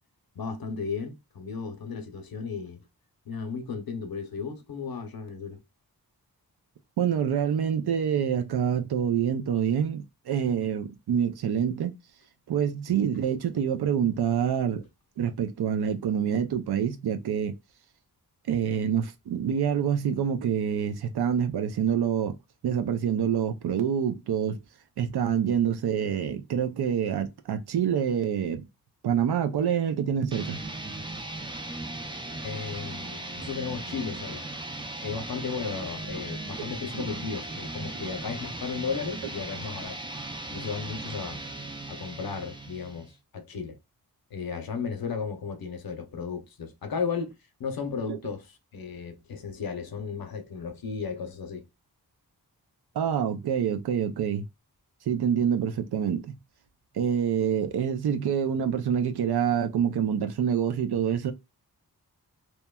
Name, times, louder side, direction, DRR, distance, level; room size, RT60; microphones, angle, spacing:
voice 1, 0.3-2.8 3.3-5.6 13.0-13.1 32.4-34.4 35.0-40.0 40.5-41.4 41.9-43.8 44.3-47.3 47.6-48.5 48.7-51.6, left 5 dB, 65° left, 0.7 m, -34 dB
voice 2, 7.0-11.9 12.5-14.8 15.2-17.5 18.5-22.3 22.6-24.6 25.0-28.6 29.0-30.6 36.6-37.0 48.1-48.2 52.9-54.5 55.1-56.3 56.9-61.3, right 8 dB, 80° right, 0.5 m, -26 dB
sound 1, 30.3-43.1, right 2 dB, 15° right, 0.4 m, -37 dB
2.9 x 2.2 x 2.2 m
wide cardioid pair, 115°, 38 cm